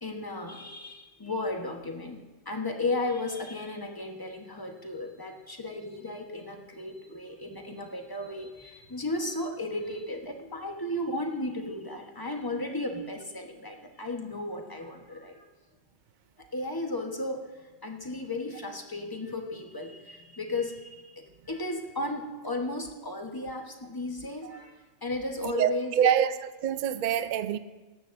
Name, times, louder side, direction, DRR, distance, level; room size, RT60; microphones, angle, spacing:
voice 1, 0.0-15.5 16.5-26.0, left 2 dB, 20° left, 1.1 m, -35 dB
voice 2, 25.4-27.6, right 9 dB, 60° right, 0.5 m, -26 dB
18.0 x 13.5 x 2.6 m
omnidirectional pair, 1.3 m